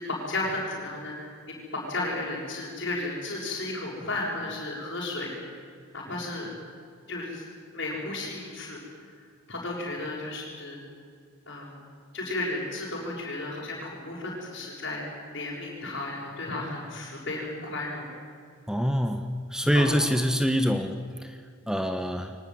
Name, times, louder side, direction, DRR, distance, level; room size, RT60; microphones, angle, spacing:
voice 1, 0.0-5.3 5.9-6.5 7.1-7.4 7.7-8.8 9.5-10.8 11.5-11.7 12.1-15.0 15.3-18.1 19.7-20.0, left 2 dB, 50° left, -8 dB, 6.9 m, -33 dB
voice 2, 18.7-21.4 21.7-22.4, equal, 5° right, 7 dB, 1.1 m, -25 dB
23.5 x 19.0 x 9.5 m, 2.1 s
head